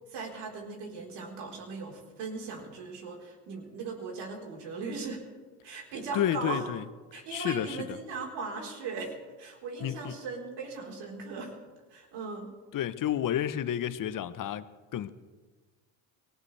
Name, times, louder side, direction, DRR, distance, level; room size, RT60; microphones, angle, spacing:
voice 1, 0.1-5.2 5.6-6.6 7.1-11.5 11.9-12.5, right 4 dB, 75° right, 4.4 m, -38 dB
voice 2, 6.1-6.8 7.1-8.0 9.8-10.1 12.7-14.7 14.9-15.1, left 11 dB, 50° left, 1.0 m, -31 dB
21.0 x 18.0 x 3.4 m
supercardioid pair, 70°, 42 cm